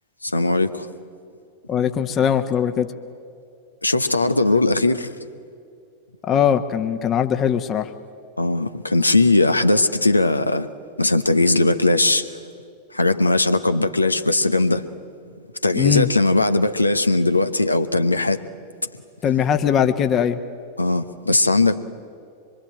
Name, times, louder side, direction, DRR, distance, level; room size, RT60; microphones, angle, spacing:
voice 1, 0.2-0.9 3.8-5.1 8.4-10.7 11.0-12.4 12.9-14.8 15.6-18.4 20.8-21.8, left 2 dB, 85° left, 1.0 m, -19 dB
voice 2, 1.7-2.9 6.2-7.9 15.7-16.1 19.2-20.4, left 8 dB, 30° left, 1.2 m, -20 dB
25.0 x 23.5 x 9.1 m
figure-of-eight pair, 90°, 0 cm